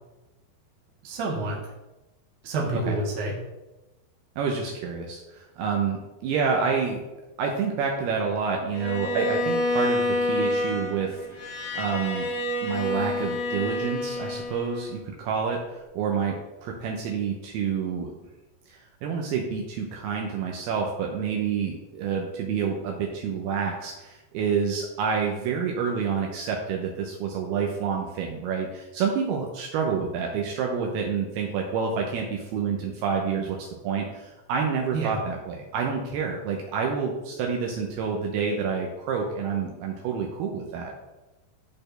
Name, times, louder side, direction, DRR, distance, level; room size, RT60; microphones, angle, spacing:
voice 1, 1.0-1.7 2.4-3.3 34.9-35.1, right 2 dB, 60° right, -2 dB, 2.0 m, -28 dB
voice 2, 4.4-7.0 7.4-12.3 12.6-18.1 18.7-41.0, right 6 dB, 90° right, 0 dB, 2.2 m, -28 dB
Bowed string instrument, 8.7-15.0, left 1 dB, 65° left, 2.4 m, -28 dB
12.5 x 4.3 x 3.3 m, 1.0 s
omnidirectional pair, 5.5 m